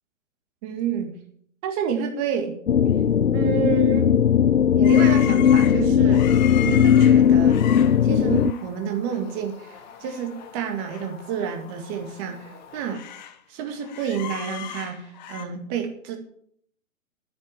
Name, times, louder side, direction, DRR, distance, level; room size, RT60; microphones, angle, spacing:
voice 1, 0.6-1.2 1.6-2.6 3.3-4.1 4.8-6.3 6.6-7.6 8.0-13.0 13.5-16.2, right 7 dB, 25° right, 5 dB, 2.0 m, -29 dB
sound 1, 2.7-8.5, left 8 dB, 85° left, 0.6 m, -17 dB
sound 2, 4.8-8.7 9.1-9.3 9.6-11.1 11.4-11.5 12.1-13.4 13.7-15.4, left 10 dB, 35° left, 1.1 m, -38 dB
sound 3, 7.2-13.0, left 5 dB, 60° left, 3.3 m, -48 dB
9.9 x 8.4 x 8.8 m, 0.63 s
figure-of-eight pair, 125°, 40 cm